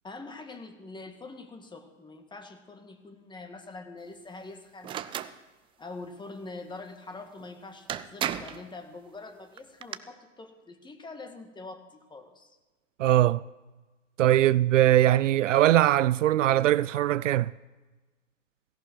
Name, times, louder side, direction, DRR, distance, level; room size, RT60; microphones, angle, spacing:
voice 1, 0.0-5.0 5.8-12.6, left 3 dB, 10° left, 1.8 m, -44 dB
sound 1, 4.8-5.3 7.4-7.5 7.9-8.6 9.6-10.0, right 10 dB, 15° right, 0.4 m, -33 dB
voice 2, 13.0-13.4 14.2-17.5, right 13 dB, 70° right, 0.5 m, -21 dB
17.0 x 16.5 x 4.6 m
hypercardioid pair, 105°, 39 cm